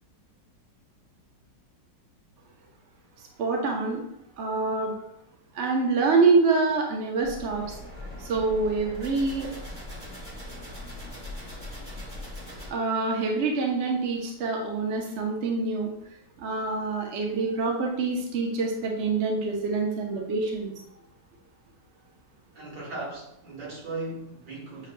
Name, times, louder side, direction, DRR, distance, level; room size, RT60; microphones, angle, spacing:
voice 1, 3.4-4.0 4.4-4.9 5.5-7.7 8.2-9.5 12.7-15.9 16.4-20.7, right 4 dB, 55° right, 0 dB, 0.8 m, -26 dB
sound 1, 7.2-12.7, left 1 dB, 25° right, 1.6 m, -40 dB
voice 2, 22.5-24.9, right 2 dB, 75° right, -5 dB, 2.1 m, -37 dB
7.3 x 2.6 x 2.2 m, 0.77 s
omnidirectional pair, 2.0 m